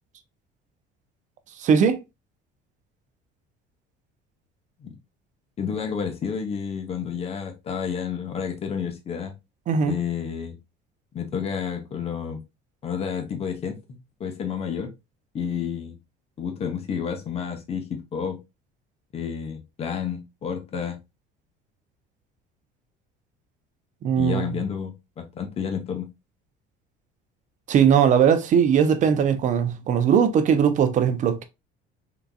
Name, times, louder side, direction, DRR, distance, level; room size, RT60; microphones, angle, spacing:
voice 1, 1.6-2.0 9.7-10.0 24.0-24.4 27.7-31.4, right 7 dB, 40° right, 0.5 m, -19 dB
voice 2, 5.6-9.3 9.9-10.6 11.1-12.4 12.8-14.9 15.3-16.0 16.4-18.4 19.1-21.0 24.2-26.1, left 7 dB, 35° left, 0.7 m, -30 dB
3.7 x 2.6 x 2.3 m
cardioid pair, 135°, 19 cm